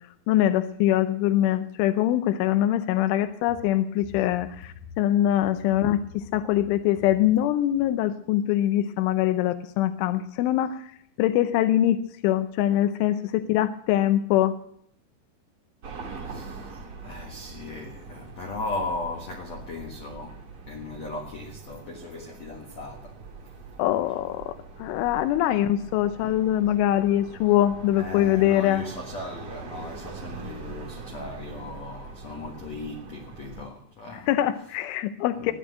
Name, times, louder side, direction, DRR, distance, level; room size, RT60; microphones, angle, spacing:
voice 1, 0.3-10.9 11.2-14.5 23.8-24.5 24.8-28.8 34.3-35.5, left 12 dB, 80° left, 3.1 m, -23 dB
sound 1, 15.8-33.7, right 4 dB, 40° right, 2.0 m, -43 dB
voice 2, 16.0-20.4 20.6-23.2 27.9-34.3 35.4-35.5, left 2 dB, 65° left, 1.7 m, -37 dB
15.0 x 10.0 x 9.1 m
omnidirectional pair, 5.6 m